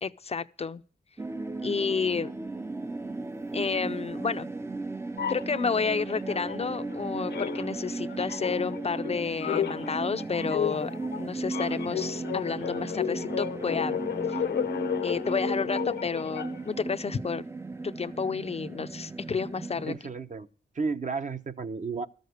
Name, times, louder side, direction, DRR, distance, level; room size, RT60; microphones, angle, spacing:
voice 1, 0.0-0.8 1.6-2.3 3.5-4.5 5.3-10.9 11.2-14.0 14.3-14.4 15.0-17.4 17.8-19.9, left 5 dB, 35° left, 0.5 m, -30 dB
sound 1, 1.2-20.0, right 3 dB, 15° right, 0.5 m, -36 dB
sound 2, 5.2-7.0 7.3-16.8, left 8 dB, 75° left, 0.8 m, -33 dB
voice 2, 19.9-20.5 20.7-22.1, right 4 dB, 45° right, 0.9 m, -32 dB
13.5 x 6.6 x 8.0 m
cardioid pair, 95°, 18 cm